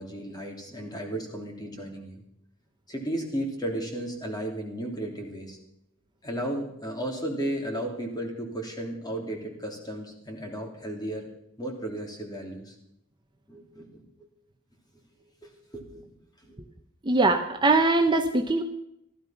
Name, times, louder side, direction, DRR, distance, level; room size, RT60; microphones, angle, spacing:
voice 1, 0.0-2.2 2.9-5.6 6.2-11.3 11.6-12.7 13.5-14.1 15.4-16.0 16.4-16.6, right 1 dB, 20° left, 2 dB, 3.2 m, -34 dB
voice 2, 17.1-18.6, right 3 dB, 20° right, 5 dB, 0.9 m, -22 dB
15.5 x 13.5 x 5.9 m, 0.79 s
head